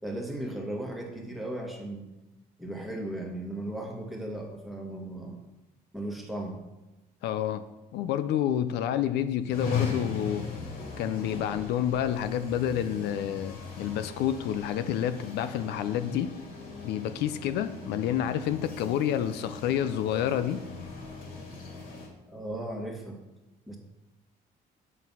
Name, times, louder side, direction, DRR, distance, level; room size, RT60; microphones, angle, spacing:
voice 1, 0.0-2.1 2.6-5.4 5.9-6.6 22.3-23.2 23.7-23.8, right 1 dB, ahead, 1 dB, 1.7 m, -36 dB
voice 2, 7.2-7.6 7.9-10.4 11.0-16.3 16.8-20.6, left 10 dB, 80° left, 11 dB, 0.5 m, -29 dB
sound 1, 9.5-22.1, left 4 dB, 60° left, 2.6 m, -38 dB
7.4 x 6.1 x 5.5 m, 1.0 s
cardioid pair, 110°, 17 cm